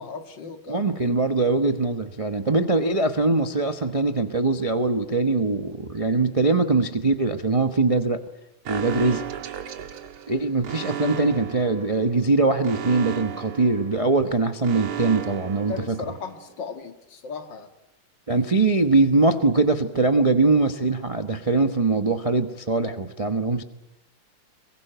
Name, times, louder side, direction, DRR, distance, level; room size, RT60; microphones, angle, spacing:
voice 1, 0.0-0.9 15.5-17.7, left 5 dB, 60° left, 8 dB, 2.3 m, -36 dB
voice 2, 0.7-8.2 8.7-9.3 10.3-16.0 18.3-23.6, right 3 dB, 30° right, 7 dB, 0.6 m, -22 dB
Alarm, 8.6-16.4, right 10 dB, 90° right, 2.3 m, -35 dB
22.5 x 22.5 x 9.0 m, 0.89 s
omnidirectional pair, 2.3 m